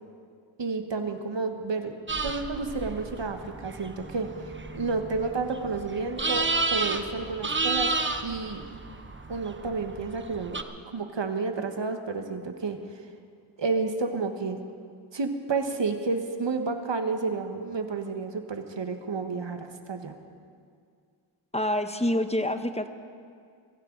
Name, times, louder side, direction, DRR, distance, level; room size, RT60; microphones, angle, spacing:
voice 1, 0.6-1.9 2.2-8.0 8.2-8.6 9.3-10.6 10.9-13.0 13.6-14.6 15.1-20.2, right 4 dB, 60° right, 6 dB, 1.5 m, -31 dB
sound 1, 2.1-10.6, right 3 dB, 25° right, 1.0 m, -32 dB
voice 2, 21.5-22.9, left 1 dB, 15° left, 9 dB, 1.0 m, -27 dB
22.5 x 15.5 x 4.0 m, 2.2 s
cardioid pair, 55°, 48 cm